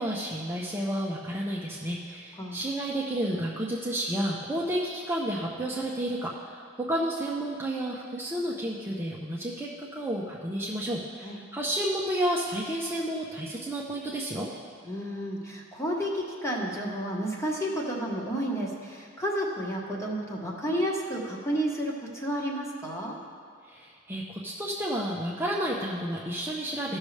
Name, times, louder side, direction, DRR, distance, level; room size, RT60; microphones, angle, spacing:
voice 1, 0.0-14.5 23.6-27.0, right 1 dB, 10° right, -5 dB, 0.7 m, -31 dB
voice 2, 14.8-23.2, equal, 15° left, -2 dB, 1.3 m, -31 dB
15.0 x 6.3 x 3.3 m, 2.2 s
head